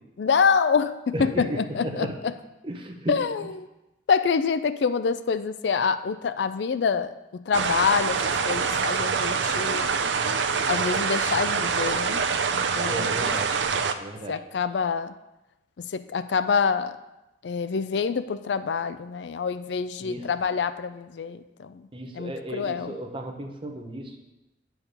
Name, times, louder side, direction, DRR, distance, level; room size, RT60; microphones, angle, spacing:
voice 1, 0.2-2.3 3.1-3.7 4.1-10.0 10.7-12.2 12.5-13.3 14.3-15.1 15.9-17.0 17.4-21.9 22.1-22.9, left 5 dB, 70° left, 12 dB, 0.4 m, -26 dB
voice 2, 1.1-2.2 2.6-3.2 12.9-13.6 14.0-14.4 20.0-20.3 21.9-24.1, right 1 dB, 30° right, 2 dB, 1.0 m, -34 dB
sound 1, 7.5-13.9, right 5 dB, 85° right, 0.5 m, -25 dB
8.7 x 4.7 x 6.7 m, 0.96 s
head